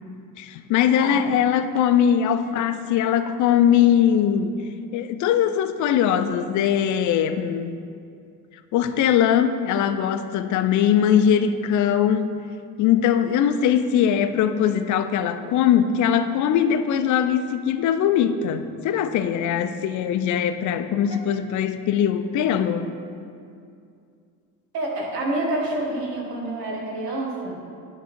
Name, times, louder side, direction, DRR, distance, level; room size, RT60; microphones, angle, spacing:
voice 1, 0.4-4.6 4.9-7.8 8.7-12.4 12.8-23.0, left 9 dB, 40° left, 10 dB, 0.5 m, -21 dB
voice 2, 0.9-1.2 21.0-21.2 24.7-27.5, right 1 dB, 80° right, -1 dB, 1.2 m, -28 dB
9.2 x 3.8 x 4.5 m, 2.4 s
hypercardioid pair, 55°, 47 cm